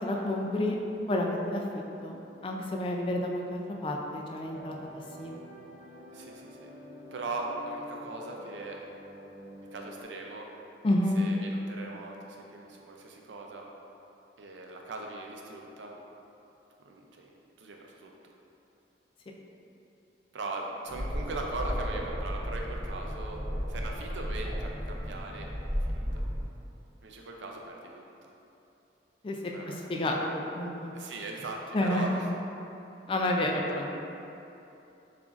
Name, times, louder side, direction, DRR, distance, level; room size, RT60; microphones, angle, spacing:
voice 1, 0.0-0.8 1.1-4.7 5.2-5.4 10.8-11.2 29.2-29.4 29.7-30.9 31.7-32.1 33.1-33.9, left 1 dB, 30° left, 0 dB, 0.3 m, -30 dB
sound 1, 4.4-10.0, equal, 35° right, 0.7 m, -48 dB
voice 2, 6.1-6.7 7.1-8.9 9.7-10.5 11.1-13.7 14.4-16.0 16.8-17.3 17.6-18.1 20.3-23.4 23.7-25.5 25.8-26.2 27.0-28.3 29.5-29.8 30.9-32.3 33.4-33.6, right 2 dB, 85° right, 0 dB, 0.5 m, -39 dB
sound 2, 20.9-26.4, equal, 15° right, 1.0 m, -34 dB
6.8 x 2.5 x 2.5 m, 2.9 s
head